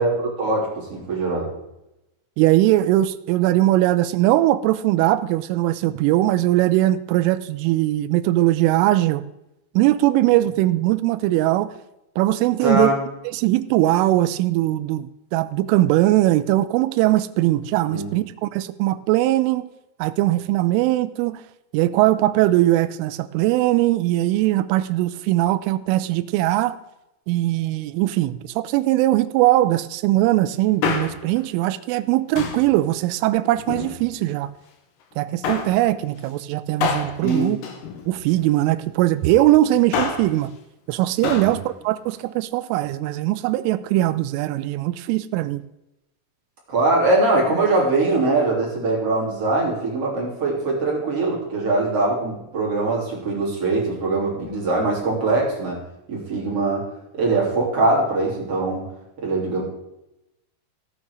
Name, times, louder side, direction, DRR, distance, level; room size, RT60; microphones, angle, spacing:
voice 1, 0.0-1.5 12.6-13.0 17.9-18.1 37.2-37.5 41.3-41.6 46.7-55.8 56.1-56.8 57.2-58.9 59.2-59.6, right 2 dB, 35° right, -4 dB, 3.7 m, -22 dB
voice 2, 2.4-9.2 9.8-11.7 12.2-12.9 13.3-19.7 20.0-21.4 21.7-26.8 27.3-34.5 35.2-37.6 38.1-40.5 40.9-45.6, right 15 dB, 85° right, 12 dB, 3.1 m, -20 dB
Male speech man speaking, 30.6-31.4 32.4-32.7 33.5-34.3 35.4-35.8 36.8-38.5 39.7-40.4 41.2-41.6 41.8-41.9, left 5 dB, 80° left, 2.0 m, -27 dB
14.5 x 9.0 x 4.8 m, 0.89 s
omnidirectional pair, 5.8 m